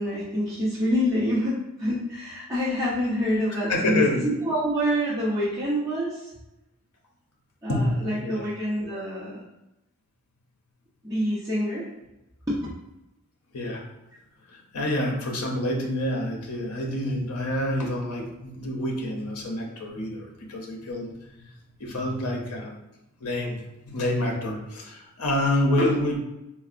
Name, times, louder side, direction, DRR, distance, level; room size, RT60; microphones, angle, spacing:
voice 1, 0.0-6.3 7.6-9.4 11.0-11.9 12.5-12.6, equal, 15° right, -12 dB, 0.7 m, -26 dB
voice 2, 3.5-4.2 7.7-8.4 13.5-13.8 14.5-21.5 21.8-22.7 23.2-26.2, left 1 dB, 85° left, 0 dB, 0.7 m, -27 dB
4.0 x 2.1 x 2.4 m, 0.93 s
head